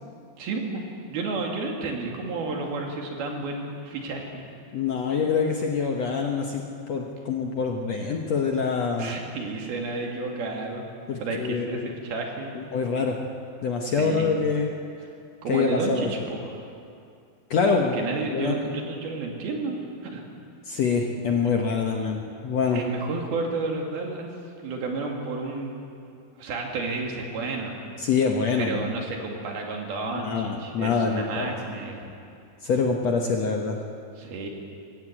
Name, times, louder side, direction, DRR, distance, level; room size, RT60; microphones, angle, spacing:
voice 1, 0.4-0.8 1.1-4.5 9.0-10.9 11.2-12.5 14.0-14.3 15.4-16.7 18.0-20.3 22.7-24.3 24.6-25.8 26.4-27.7 28.6-32.2 34.2-34.5, right 3 dB, 75° right, 1 dB, 4.3 m, -31 dB
voice 2, 4.7-6.6 6.9-9.1 11.1-11.9 12.6-13.2 13.6-14.7 15.5-16.1 17.5-18.0 18.3-18.6 20.7-22.8 28.0-28.9 30.2-31.7 32.6-33.8, left 5 dB, 65° left, 2 dB, 1.8 m, -25 dB
21.0 x 16.0 x 8.9 m, 2.5 s
omnidirectional pair, 4.4 m